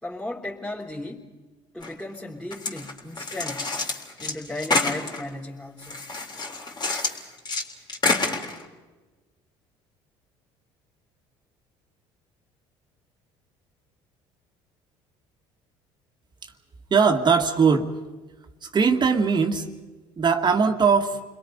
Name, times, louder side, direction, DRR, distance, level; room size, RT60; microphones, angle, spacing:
voice 1, 0.0-1.3 1.7-3.8 4.2-6.1, left 1 dB, 5° left, -4 dB, 3.4 m, -35 dB
sound 1, 1.8-2.0 2.5-5.3 5.8-7.6 7.9-8.6, left 3 dB, 35° left, 3.6 m, -28 dB
voice 2, 16.9-18.0 18.6-19.8 20.2-21.2, right 5 dB, 35° right, 5 dB, 2.0 m, -20 dB
29.5 x 22.0 x 5.4 m, 1.3 s
supercardioid pair, 75°, 12 cm